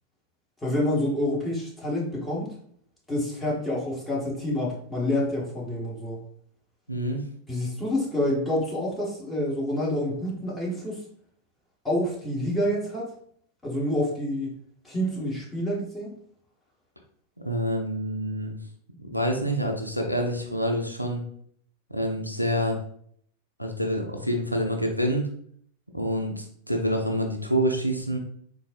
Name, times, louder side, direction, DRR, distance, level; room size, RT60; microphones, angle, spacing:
voice 1, 0.6-2.5 3.1-6.2 7.5-11.0 11.8-13.1 13.6-14.5 14.8-16.1, left 1 dB, 10° left, -5 dB, 1.3 m, -27 dB
voice 2, 6.9-7.2 17.4-18.6 19.0-21.2 21.9-22.8 23.6-25.3 25.9-28.2, equal, 90° right, 2 dB, 0.5 m, -27 dB
3.9 x 2.6 x 2.5 m, 0.63 s
figure-of-eight pair, 90°, 0 cm